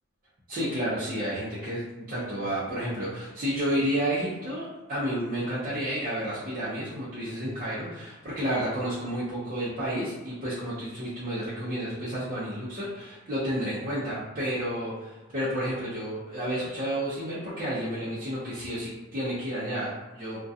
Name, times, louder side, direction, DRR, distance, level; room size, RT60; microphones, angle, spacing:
voice 1, 0.5-20.4, equal, 40° right, -10 dB, 0.5 m, -31 dB
2.3 x 2.1 x 2.6 m, 1.1 s
head